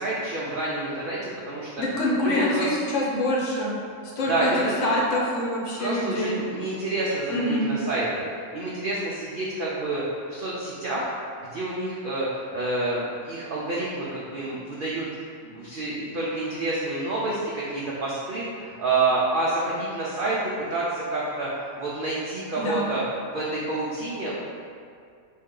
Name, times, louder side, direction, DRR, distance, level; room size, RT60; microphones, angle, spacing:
voice 1, 0.0-1.7 2.2-2.7 4.3-5.0 5.8-8.3 8.5-10.0 10.3-11.1 11.5-15.1 15.4-20.4 20.7-24.3, right 2 dB, 70° right, -6 dB, 0.5 m, -28 dB
voice 2, 1.8-3.8 4.2-4.5 4.8-6.3 7.3-7.7 22.6-22.9, left 1 dB, 60° left, -4 dB, 1.0 m, -25 dB
4.2 x 2.7 x 3.7 m, 2.3 s
omnidirectional pair, 1.5 m